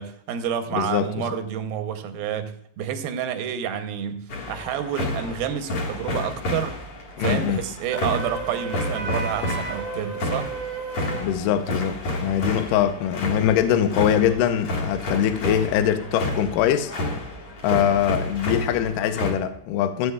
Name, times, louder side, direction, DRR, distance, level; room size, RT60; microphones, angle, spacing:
voice 1, 0.0-6.7 7.2-10.5, right 8 dB, 80° right, 8 dB, 2.6 m, -29 dB
voice 2, 0.7-1.3 7.2-7.6 11.2-16.9 17.6-20.1, left 10 dB, 80° left, 10 dB, 2.0 m, -23 dB
sound 1, 4.3-19.3, left 1 dB, 50° left, 2.0 m, -30 dB
Wind instrument woodwind instrument, 7.9-11.3, right 5 dB, 60° right, 1.8 m, -33 dB
15.0 x 8.4 x 2.3 m, 0.67 s
omnidirectional pair, 4.4 m